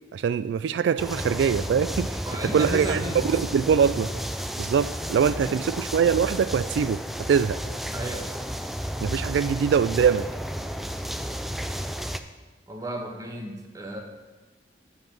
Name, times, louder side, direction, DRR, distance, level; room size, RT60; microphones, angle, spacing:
voice 1, 0.1-4.1 4.6-7.0 7.3-7.6 9.0-10.3, right 7 dB, 85° right, 14 dB, 0.3 m, -23 dB
sound 1, 1.0-12.2, equal, ahead, 0.4 m, -32 dB
voice 2, 2.2-3.4 5.4-5.5 7.9-8.3 12.7-14.0, right 1 dB, 20° right, 2 dB, 1.3 m, -33 dB
10.5 x 5.8 x 6.0 m, 1.2 s
head